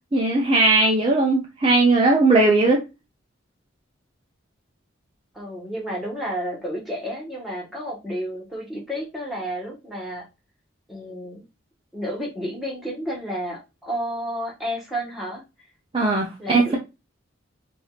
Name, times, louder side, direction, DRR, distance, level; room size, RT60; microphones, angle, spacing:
voice 1, 0.1-2.8 15.9-16.8, right 2 dB, 25° right, -1 dB, 0.6 m, -18 dB
voice 2, 5.3-10.2 10.9-11.4 11.9-15.4 16.4-16.8, equal, ahead, -3 dB, 1.3 m, -31 dB
5.1 x 2.6 x 2.3 m, 0.26 s
head